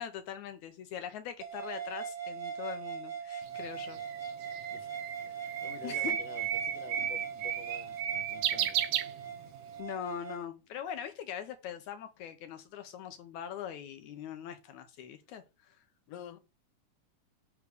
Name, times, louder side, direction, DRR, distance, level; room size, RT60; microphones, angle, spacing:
voice 1, 0.0-4.0 5.8-6.2 9.8-15.8, left 9 dB, 80° left, 2.2 m, -42 dB
sound 1, 1.4-10.4, right 7 dB, 55° right, 0.8 m, -41 dB
Bird, 3.5-9.7, right 10 dB, 75° right, 1.5 m, -34 dB
voice 2, 4.7-9.0 16.1-16.4, left 9 dB, 65° left, 2.0 m, -50 dB
10.5 x 3.7 x 6.4 m
omnidirectional pair, 3.5 m